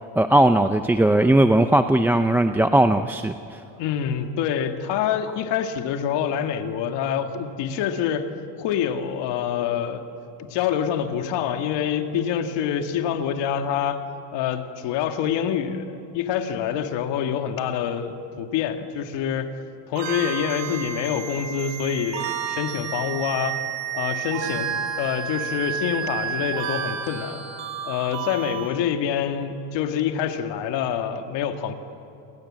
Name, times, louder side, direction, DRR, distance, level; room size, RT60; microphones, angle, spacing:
voice 1, 0.2-3.6, right 1 dB, 5° right, 7 dB, 0.5 m, -18 dB
voice 2, 3.8-8.3 8.6-10.0 10.4-14.0 14.3-19.5 19.9-23.6 23.9-27.4 27.9-31.7, left 8 dB, 65° left, 6 dB, 2.2 m, -26 dB
sound 1, 20.0-28.7, right 8 dB, 70° right, 5.0 m, -31 dB
28.5 x 23.5 x 7.6 m, 2.9 s
cardioid pair, 130°, 46 cm